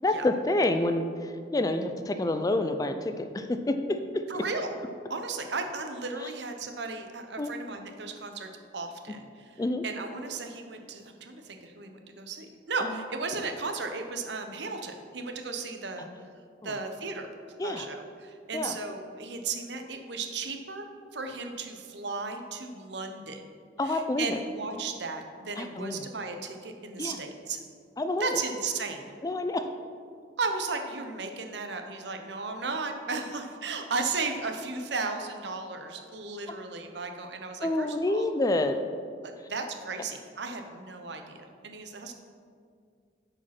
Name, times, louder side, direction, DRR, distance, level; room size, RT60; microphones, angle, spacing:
voice 1, 0.0-4.2 6.2-6.3 7.4-7.5 9.6-9.8 12.8-13.0 16.0-16.1 16.6-16.7 17.6-17.9 18.5-18.8 23.8-24.4 25.6-26.1 27.0-27.2 28.0-28.4 29.2-29.7 37.6-38.8, left 2 dB, 20° left, 8 dB, 0.3 m, -28 dB
voice 2, 4.3-4.7 5.1-9.4 9.8-16.1 16.6-17.3 17.6-20.9 21.1-23.4 23.8-27.6 28.2-29.1 30.4-38.2 39.2-42.1, right 4 dB, 70° right, 5 dB, 0.8 m, -35 dB
8.4 x 5.0 x 5.9 m, 2.2 s
head